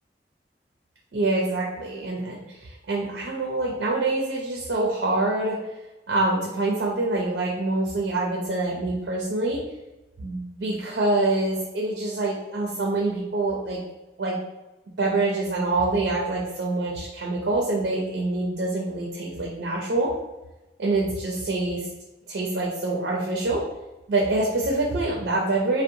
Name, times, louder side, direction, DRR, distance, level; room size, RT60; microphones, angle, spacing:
voice 1, 1.1-5.6 6.1-9.6 10.2-13.8 14.2-14.4 15.0-20.1 20.8-21.9 22.3-23.6 24.1-25.8, right 2 dB, 75° right, -2 dB, 0.4 m, -25 dB
2.6 x 2.1 x 2.6 m, 1.0 s
head